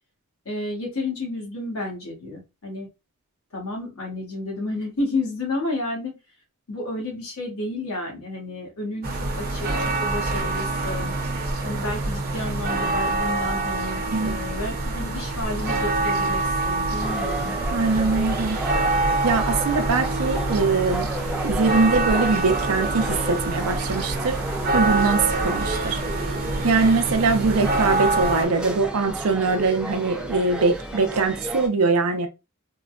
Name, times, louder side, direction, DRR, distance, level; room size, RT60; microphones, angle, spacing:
voice 1, 0.4-2.9 3.5-6.1 6.7-9.1 9.4-11.1 11.6-17.8, left 2 dB, 75° left, 1.5 m, -31 dB
sound 1, 9.0-28.4, right 2 dB, 45° right, 0.7 m, -26 dB
sound 2, 16.9-31.7, right 1 dB, 5° right, 0.4 m, -33 dB
voice 2, 17.7-18.6 19.2-21.1 21.4-24.4 24.7-26.0 26.6-32.3, right 4 dB, 80° right, 0.6 m, -22 dB
3.8 x 2.2 x 2.4 m
head